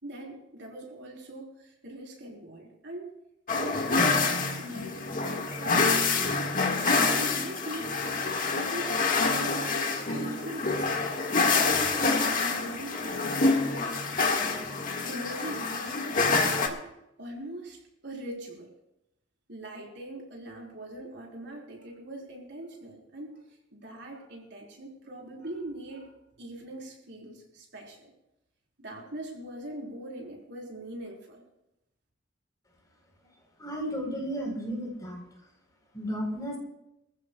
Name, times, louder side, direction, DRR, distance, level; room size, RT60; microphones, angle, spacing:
voice 1, 0.0-3.1 3.5-6.2 6.9-8.9 9.3-11.4 12.0-14.0 15.0-16.8 17.2-18.7 19.5-28.1 28.8-31.4, right 1 dB, 65° right, -1 dB, 4.4 m, -41 dB
sound 1, 3.5-16.7, left 3 dB, 45° left, 1.8 m, -27 dB
voice 2, 33.6-35.2 35.9-36.6, equal, 20° left, 0 dB, 4.2 m, -33 dB
26.0 x 15.0 x 2.4 m, 0.86 s
head